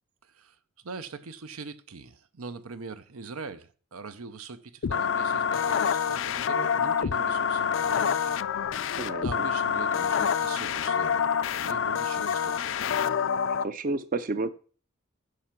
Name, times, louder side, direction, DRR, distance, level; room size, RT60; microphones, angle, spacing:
voice 1, 0.2-0.6 0.8-8.3 9.2-11.2 11.5-12.9, right 4 dB, 90° right, 0.7 m, -42 dB
sound 1, 4.8-13.6, left 7 dB, 60° left, 0.4 m, -27 dB
voice 2, 8.9-9.4 13.6-14.5, right 3 dB, 40° right, 0.5 m, -31 dB
9.9 x 5.8 x 5.9 m
head